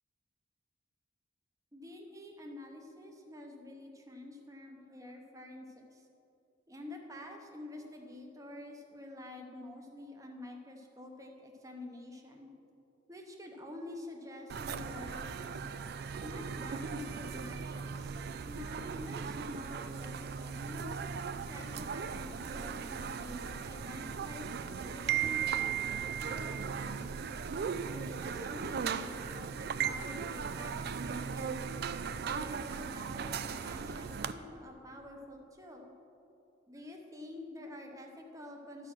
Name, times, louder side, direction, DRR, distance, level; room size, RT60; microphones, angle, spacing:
voice 1, 1.7-6.1 6.7-12.5 13.1-15.7 16.2-21.0 21.5-25.7 26.1-27.3 27.9-31.6 32.2-35.9 36.7-38.9, left 1 dB, 15° right, 2 dB, 0.8 m, -48 dB
sound 1, 14.5-34.3, right 7 dB, 55° right, 0.3 m, -37 dB
12.5 x 4.6 x 6.0 m, 2.7 s
head